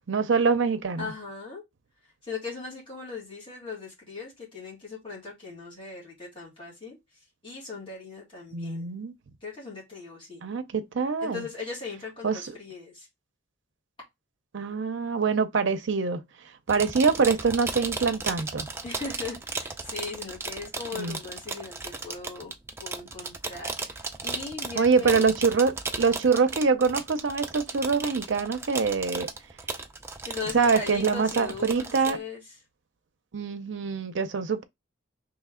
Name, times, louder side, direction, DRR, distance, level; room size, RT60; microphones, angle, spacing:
voice 1, 0.1-1.1 8.5-9.1 10.4-11.4 12.2-12.4 14.5-16.2 16.7-18.7 20.9-21.2 24.8-29.3 30.5-32.2 33.3-34.6, right 5 dB, 65° right, 0.5 m, -24 dB
voice 2, 1.0-1.6 2.2-7.0 7.4-8.9 9.4-10.4 11.2-13.1 18.8-22.5 22.8-25.3 30.2-32.4, left 4 dB, 25° left, 1.9 m, -38 dB
sound 1, 16.7-32.2, right 3 dB, 10° right, 0.3 m, -36 dB
3.1 x 3.1 x 3.6 m
head